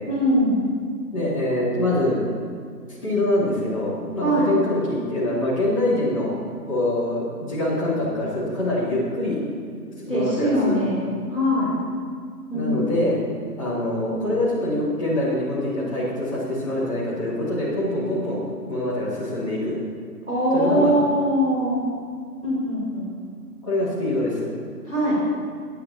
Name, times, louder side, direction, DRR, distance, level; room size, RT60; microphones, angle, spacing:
voice 1, 0.0-0.6 4.2-4.5 10.1-11.8 12.5-12.8 20.2-21.8 22.4-23.1 24.8-25.2, equal, 5° right, -19 dB, 1.5 m, -22 dB
voice 2, 1.1-2.2 2.9-6.3 6.7-9.4 10.1-10.8 12.5-13.2 13.6-19.8 20.5-20.9 23.6-24.5, left 1 dB, 20° left, -10 dB, 2.8 m, -24 dB
20.0 x 8.4 x 2.9 m, 2.1 s
figure-of-eight pair, 165°, 50 cm